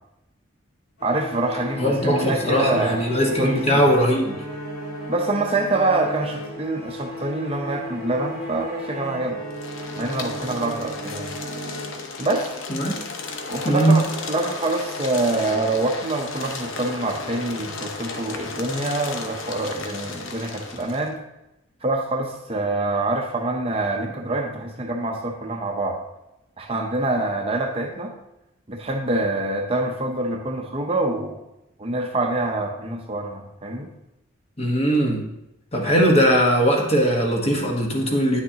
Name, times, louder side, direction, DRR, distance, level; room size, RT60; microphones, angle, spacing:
sound 1, 1.0-12.5, equal, 85° left, 2.3 m, -35 dB
voice 1, 1.0-3.0 3.4-3.8 5.1-9.4 10.0-11.3 12.2-12.5 13.5-21.2 21.8-26.0 26.6-28.1 28.7-31.4 31.8-33.9, right 2 dB, 30° right, 2 dB, 0.7 m, -25 dB
voice 2, 1.8-4.3 12.7-12.9 13.6-14.0 34.6-35.2 35.7-38.4, equal, 30° left, 0 dB, 1.2 m, -20 dB
sound 2, 9.5-21.1, left 4 dB, 70° left, 0.8 m, -34 dB
9.5 x 6.4 x 2.9 m, 0.88 s
head